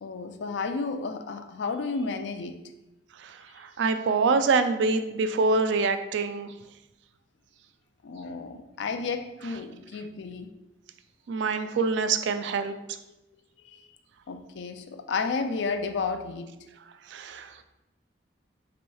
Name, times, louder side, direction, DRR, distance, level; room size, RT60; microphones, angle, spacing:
voice 1, 0.0-2.6 8.0-10.5 13.6-13.9 14.3-16.5, left 4 dB, 70° left, 7 dB, 0.4 m, -32 dB
voice 2, 3.6-6.5 11.3-12.7 17.1-17.6, right 4 dB, 70° right, 9 dB, 0.3 m, -25 dB
3.0 x 3.0 x 4.6 m, 0.97 s
head